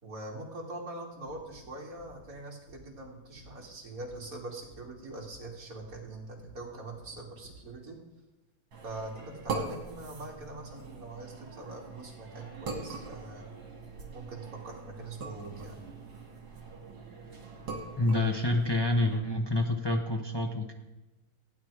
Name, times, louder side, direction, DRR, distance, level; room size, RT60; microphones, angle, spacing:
voice 1, 0.0-8.0 8.8-13.5 14.1-15.8, right 2 dB, 45° right, -2 dB, 2.9 m, -43 dB
sound 1, 1.1-7.7, right 1 dB, 85° left, 5.3 m, -56 dB
sound 2, 8.7-19.2, right 3 dB, 70° right, 2.9 m, -42 dB
voice 2, 18.0-20.7, left 1 dB, 45° left, 2 dB, 0.3 m, -27 dB
16.0 x 9.4 x 4.9 m, 1.1 s
omnidirectional pair, 2.2 m